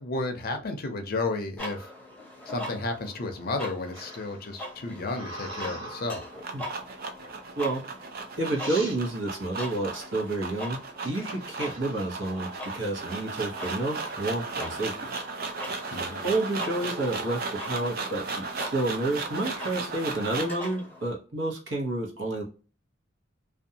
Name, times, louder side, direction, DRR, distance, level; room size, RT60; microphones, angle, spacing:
voice 1, 0.0-1.9 2.5-6.2 15.9-16.3, left 2 dB, 50° left, 0.5 m, -32 dB
sound 1, 1.6-21.1, left 1 dB, 10° left, 0.7 m, -43 dB
sound 2, 3.9-6.4 7.2-7.6 8.2-8.3 8.5-9.0 11.0-12.7 13.1-13.5 13.8-15.0 15.5-15.9 16.7-17.7, right 1 dB, 30° right, 1.3 m, -43 dB
sound 3, 6.0-20.6, right 4 dB, 50° right, 0.5 m, -36 dB
voice 2, 8.4-10.8 11.0-14.9 16.2-22.4, right 2 dB, 70° right, 1.0 m, -30 dB
2.6 x 2.2 x 2.7 m
head